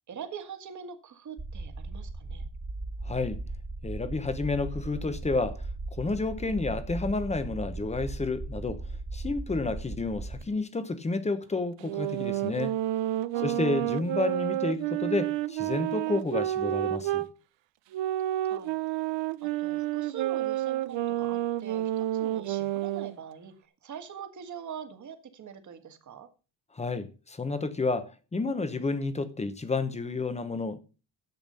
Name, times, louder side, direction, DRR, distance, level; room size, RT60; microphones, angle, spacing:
voice 1, 0.1-2.5 13.3-13.9 18.5-18.7 19.4-26.3, right 7 dB, 40° right, 1.6 m, -43 dB
sound 1, 1.4-10.4, right 2 dB, 20° right, 1.8 m, -37 dB
voice 2, 3.0-3.4 3.8-5.7 6.0-8.8 9.1-12.7 13.4-17.3 26.7-30.8, left 3 dB, 15° left, 0.9 m, -30 dB
sound 2, 11.8-17.3 17.9-23.1, right 14 dB, 75° right, 0.7 m, -30 dB
10.5 x 8.0 x 5.5 m
cardioid pair, 175°, 44 cm